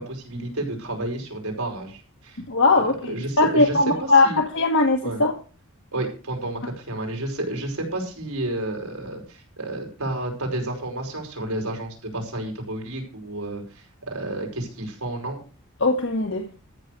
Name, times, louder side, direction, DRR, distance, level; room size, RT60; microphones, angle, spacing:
voice 1, 0.0-2.4 2.7-4.4 5.0-5.2 5.9-15.4, right 1 dB, 90° right, 2 dB, 5.2 m, -31 dB
voice 2, 2.5-4.3 4.5-5.3 15.8-16.5, left 3 dB, 60° left, 3 dB, 1.5 m, -20 dB
13.5 x 6.7 x 6.6 m, 0.35 s
head